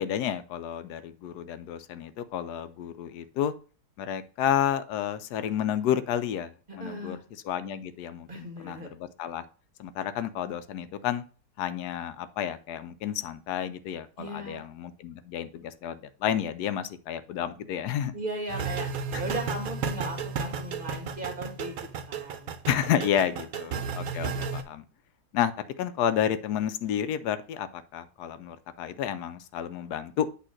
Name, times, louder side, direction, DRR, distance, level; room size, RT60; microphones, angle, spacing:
voice 1, 0.0-3.5 4.0-7.2 7.4-9.4 9.8-11.2 11.6-18.1 19.1-19.2 22.7-24.8 25.3-25.5 25.8-30.3, left 9 dB, 80° left, 12 dB, 1.1 m, -30 dB
voice 2, 6.7-7.2 8.3-8.9 14.2-14.6 18.1-18.9 19.2-21.8 22.1-22.5, right 1 dB, 35° right, 2 dB, 1.6 m, -37 dB
sound 1, 18.5-24.6, right 5 dB, 65° right, 1.1 m, -33 dB
8.4 x 3.0 x 6.3 m, 0.37 s
omnidirectional pair, 1.7 m